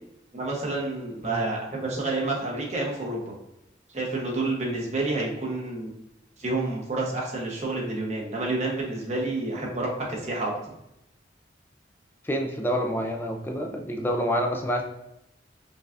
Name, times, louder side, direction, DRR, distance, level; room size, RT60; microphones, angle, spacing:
voice 1, 0.3-3.3 3.9-5.9 6.4-10.5, right 2 dB, 40° right, -3 dB, 1.0 m, -29 dB
voice 2, 12.3-14.8, equal, 10° left, 3 dB, 0.3 m, -27 dB
5.2 x 2.3 x 2.5 m, 0.85 s
head